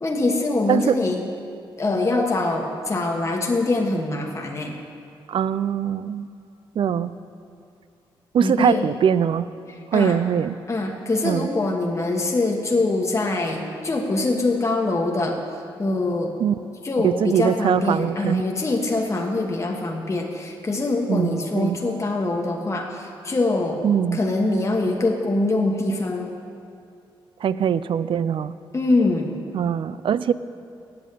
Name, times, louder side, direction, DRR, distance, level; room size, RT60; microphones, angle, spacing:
voice 1, 0.0-1.2 1.8-4.8 8.4-8.9 9.9-10.2 10.7-15.4 15.8-16.3 16.8-23.8 24.1-26.3 28.7-29.4, left 2 dB, 30° left, 1 dB, 1.2 m, -23 dB
voice 2, 5.3-6.3 6.8-7.1 8.3-9.5 9.9-10.6 11.2-11.5 16.4-16.6 17.0-18.4 21.1-21.8 23.8-24.2 27.4-28.5 29.5-30.3, right 8 dB, 60° right, 15 dB, 0.4 m, -22 dB
8.7 x 7.3 x 8.3 m, 2.5 s
cardioid pair, 60°, 10 cm